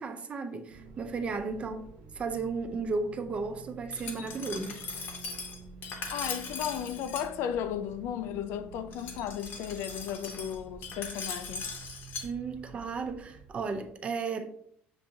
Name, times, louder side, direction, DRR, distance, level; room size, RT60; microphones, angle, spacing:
voice 1, 0.0-1.9 2.1-4.8 12.2-14.5, right 4 dB, 30° right, 0.5 m, -34 dB
sound 1, 0.7-14.1, right 4 dB, 85° right, 0.6 m, -50 dB
Glass, 3.9-7.3 8.9-12.3, left 5 dB, 55° left, 0.8 m, -39 dB
voice 2, 6.1-11.7, left 9 dB, 85° left, 0.4 m, -35 dB
6.7 x 2.6 x 2.7 m
cardioid pair, 155°, 4 cm